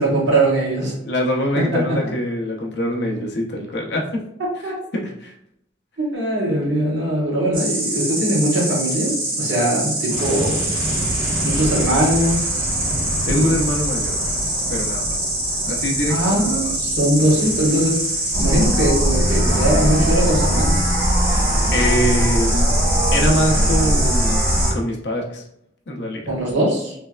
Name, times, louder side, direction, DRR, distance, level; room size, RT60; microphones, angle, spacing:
voice 1, 0.0-0.9 1.5-2.0 4.6-4.7 6.1-10.8 11.4-12.6 13.3-13.4 16.0-20.8 26.3-26.9, right 1 dB, 70° right, -4 dB, 1.5 m, -21 dB
voice 2, 1.0-4.2 4.6-5.3 13.3-14.2 14.7-15.2 15.7-16.8 21.7-22.8 23.1-25.4 25.9-26.2, equal, 60° left, 1 dB, 0.7 m, -24 dB
Insect, 7.5-24.7, right 2 dB, 45° right, 1.1 m, -25 dB
sound 1, 10.1-23.2 23.5-23.7, equal, 20° right, 0.8 m, -31 dB
sound 2, 18.3-24.7, equal, 15° left, 1.3 m, -19 dB
3.4 x 3.2 x 2.3 m, 0.74 s
head